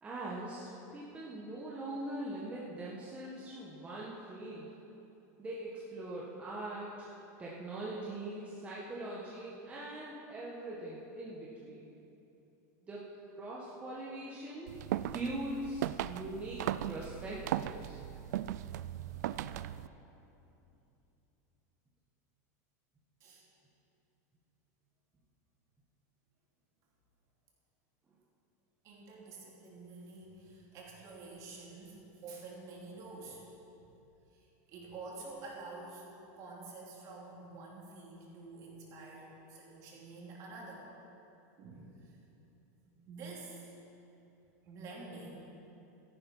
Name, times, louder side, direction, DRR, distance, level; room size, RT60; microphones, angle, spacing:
voice 1, 0.0-4.7 5.4-7.1 7.4-11.9 12.8-13.0 13.4-14.8 15.1-18.0, right 1 dB, 15° right, -6 dB, 1.5 m, -42 dB
sound 1, 14.7-19.9, right 12 dB, 85° right, 0.4 m, -37 dB
voice 2, 28.8-33.4 34.3-36.1 36.3-40.9 41.5-42.2 42.8-43.7 44.6-45.6, right 3 dB, 40° right, -3 dB, 3.1 m, -48 dB
14.0 x 11.0 x 5.6 m, 2.9 s
supercardioid pair, 155°, 9 cm